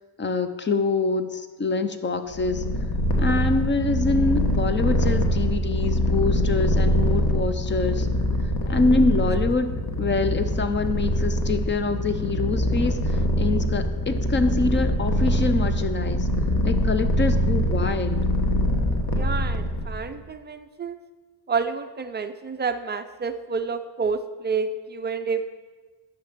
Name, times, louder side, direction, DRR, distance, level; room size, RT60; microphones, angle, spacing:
voice 1, 0.2-2.6 3.2-8.1 8.7-9.7 10.0-16.3 16.6-18.2, left 3 dB, 25° left, 9 dB, 0.6 m, -25 dB
Purr, 2.3-20.0, equal, 45° left, 1.3 m, -23 dB
voice 2, 19.1-20.9 21.5-25.4, right 5 dB, 25° right, 9 dB, 0.4 m, -29 dB
9.3 x 6.5 x 6.0 m, 1.3 s
cardioid pair, 140°, 47 cm